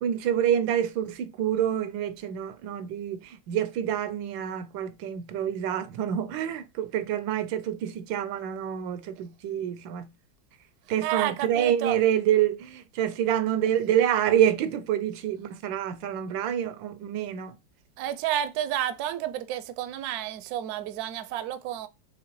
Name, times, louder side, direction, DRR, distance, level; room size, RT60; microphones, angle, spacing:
voice 1, 0.0-10.1 10.9-17.6, right 10 dB, 85° right, 1.3 m, -27 dB
voice 2, 11.0-12.0 18.0-21.9, right 11 dB, 70° right, 0.9 m, -30 dB
5.8 x 2.9 x 3.0 m
omnidirectional pair, 2.0 m